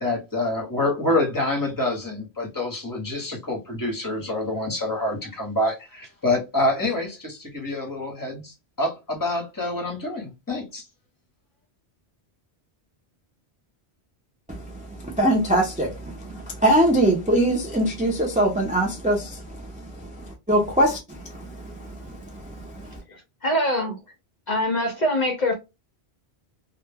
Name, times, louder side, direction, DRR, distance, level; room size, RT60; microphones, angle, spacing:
voice 1, 0.0-10.8, left 2 dB, 20° left, 0.8 m, -27 dB
voice 2, 14.5-22.9, right 1 dB, 10° right, 0.4 m, -23 dB
voice 3, 23.1-24.0 24.5-25.5, left 1 dB, 50° left, 0.6 m, -24 dB
2.1 x 2.1 x 3.3 m
omnidirectional pair, 1.1 m